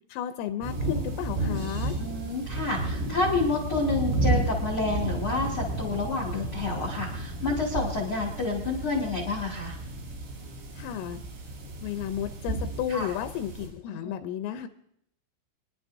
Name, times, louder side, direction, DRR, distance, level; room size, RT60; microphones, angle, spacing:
voice 1, 0.1-2.0 10.7-11.2 11.8-14.7, left 10 dB, 85° left, 8 dB, 3.1 m, -33 dB
sound 1, 0.6-13.7, right 2 dB, 75° right, 6.4 m, -32 dB
voice 2, 2.0-9.8 12.9-13.1 14.0-14.1, left 3 dB, 65° left, -2 dB, 1.2 m, -29 dB
27.0 x 10.5 x 2.7 m, 0.70 s
omnidirectional pair, 5.8 m